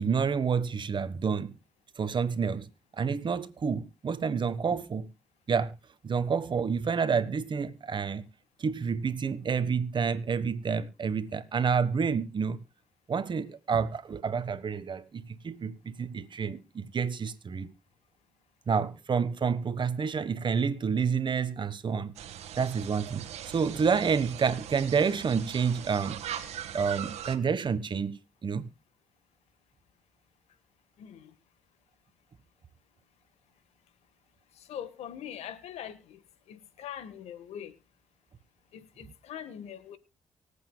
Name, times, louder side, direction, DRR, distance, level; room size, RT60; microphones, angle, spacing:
voice 1, 0.0-1.5 2.0-2.7 2.9-5.1 5.5-5.8 6.0-8.2 8.6-12.6 13.1-17.7 18.7-22.1 22.5-26.2 26.7-28.7, right 6 dB, 45° right, 1.3 m, -29 dB
sound 1, 22.2-27.4, right 10 dB, 85° right, 1.6 m, -40 dB
voice 2, 31.0-31.3 34.6-36.2 36.5-37.7 38.7-40.0, left 9 dB, 85° left, 1.4 m, -42 dB
24.5 x 8.4 x 2.2 m
cardioid pair, 70°, 11 cm